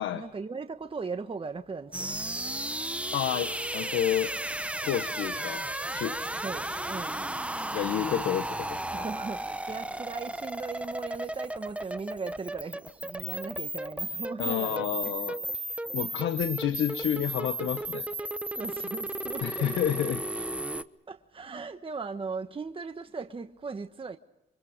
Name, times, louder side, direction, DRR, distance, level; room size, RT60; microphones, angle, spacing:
voice 1, 0.1-2.1 6.4-7.3 8.9-14.9 18.2-19.7 21.1-24.2, right 4 dB, 25° right, 1.3 m, -38 dB
sound 1, 1.9-20.8, right 1 dB, 5° right, 1.0 m, -34 dB
voice 2, 3.1-4.3 4.8-5.6 5.9-6.2 7.7-9.0 14.4-15.4 15.9-18.1 19.4-20.5, left 11 dB, 80° left, 1.2 m, -30 dB
28.5 x 25.5 x 5.1 m
cardioid pair, 90°, 20 cm